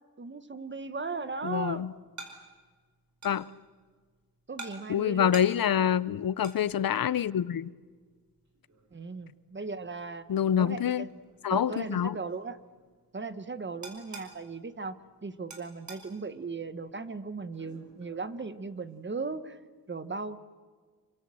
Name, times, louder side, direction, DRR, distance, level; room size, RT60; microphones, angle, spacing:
voice 1, 0.2-1.9 4.5-5.4 8.9-10.2 10.6-11.1 11.5-12.6 13.1-15.0 15.2-19.6 19.9-20.4, right 4 dB, 30° right, 1.2 m, -37 dB
sound 1, 0.7-19.2, right 3 dB, 50° right, 4.8 m, -52 dB
voice 2, 1.4-1.9 3.2-3.5 4.9-7.7 10.3-11.0 11.4-12.2, left 9 dB, 65° left, 0.7 m, -26 dB
27.0 x 24.5 x 7.7 m
wide cardioid pair, 165°, 37 cm